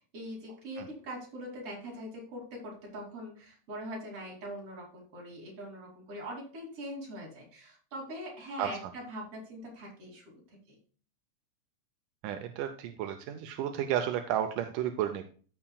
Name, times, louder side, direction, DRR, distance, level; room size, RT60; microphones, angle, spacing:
voice 1, 0.1-10.8, equal, 50° right, -2 dB, 3.6 m, -42 dB
voice 2, 12.2-15.2, right 10 dB, 85° right, 6 dB, 2.2 m, -32 dB
14.5 x 5.7 x 2.3 m, 0.41 s
omnidirectional pair, 3.6 m